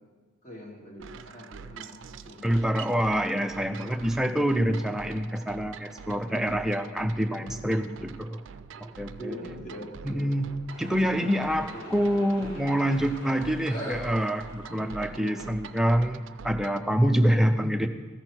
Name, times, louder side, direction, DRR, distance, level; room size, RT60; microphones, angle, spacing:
voice 1, 0.4-2.0 2.2-2.6 3.8-4.1 6.3-6.5 7.2-7.8 8.8-10.3 10.6-13.0 14.7-14.8 15.1-15.6 17.4-17.9, equal, 35° left, -1 dB, 1.7 m, -43 dB
sound 1, 1.0-16.9, right 6 dB, 70° right, 0.4 m, -45 dB
voice 2, 2.4-8.4 8.8-9.4 10.0-10.5 10.8-17.9, equal, ahead, 6 dB, 0.4 m, -26 dB
sound 2, 10.7-17.2, right 1 dB, 70° left, 2.8 m, -45 dB
14.0 x 6.1 x 4.4 m, 1.4 s
head